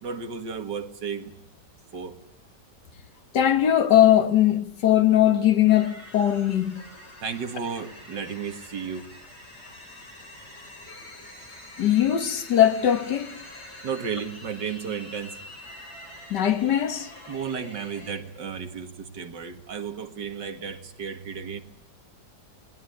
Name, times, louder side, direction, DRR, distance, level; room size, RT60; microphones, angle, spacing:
voice 1, 0.0-1.4 1.9-2.2 7.2-9.1 13.8-15.4 17.3-21.6, right 6 dB, 80° right, 2.5 m, -33 dB
voice 2, 3.3-6.8 11.8-13.3 16.3-17.1, left 11 dB, 75° left, 2.0 m, -20 dB
sound 1, 5.7-18.2, left 1 dB, 35° left, 5.4 m, -45 dB
29.5 x 19.5 x 9.8 m
omnidirectional pair, 1.9 m